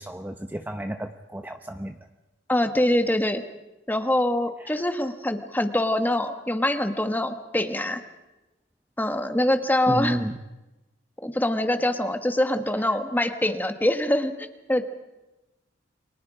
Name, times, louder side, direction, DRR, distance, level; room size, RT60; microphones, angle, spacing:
voice 1, 0.0-2.0 4.6-4.8 9.9-10.4 12.8-13.0, right 1 dB, 10° right, 6 dB, 0.9 m, -31 dB
voice 2, 2.5-3.4 3.9-8.0 9.0-10.2 11.2-14.8, left 1 dB, 10° left, 7 dB, 1.5 m, -24 dB
29.5 x 25.0 x 5.0 m, 1.0 s
head